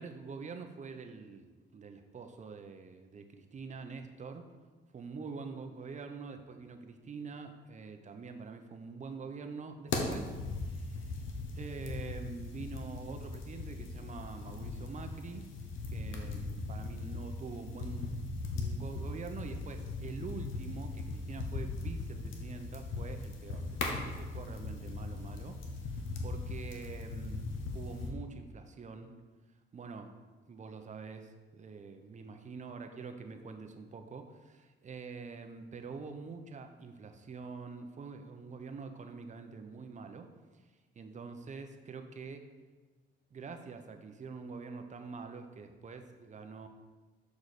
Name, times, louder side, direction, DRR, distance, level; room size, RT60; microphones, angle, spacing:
voice 1, 0.0-4.5 4.9-10.3 10.6-11.1 11.6-15.5 15.9-18.2 18.5-27.5 27.7-29.1 29.7-30.1 30.5-40.3 40.9-42.4 43.3-46.7, right 4 dB, 35° right, 6 dB, 0.8 m, -45 dB
sound 1, 9.9-28.1, left 3 dB, 80° left, 1.0 m, -39 dB
6.6 x 4.8 x 4.2 m, 1.3 s
cardioid pair, 90°, 20 cm